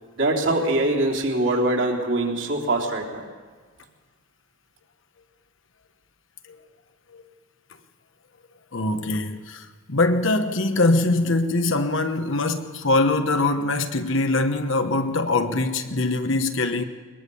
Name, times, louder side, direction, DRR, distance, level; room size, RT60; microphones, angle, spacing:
voice 1, 0.2-3.3, right 2 dB, 55° right, 3.4 m, -23 dB
voice 2, 8.7-16.8, left 2 dB, 60° left, 1.2 m, -23 dB
22.0 x 21.5 x 7.0 m
head